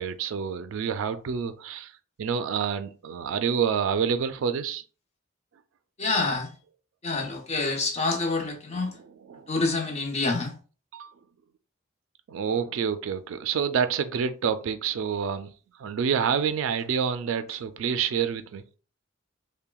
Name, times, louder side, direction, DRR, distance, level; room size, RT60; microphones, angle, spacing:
voice 1, 0.0-1.9 2.2-4.8 9.3-9.5 10.9-11.1 12.3-15.5 15.8-18.6, right 7 dB, 80° right, 0.3 m, -28 dB
voice 2, 6.0-6.5 7.0-9.0 9.5-10.5, left 3 dB, 35° left, 0.9 m, -27 dB
5.5 x 2.2 x 2.3 m
head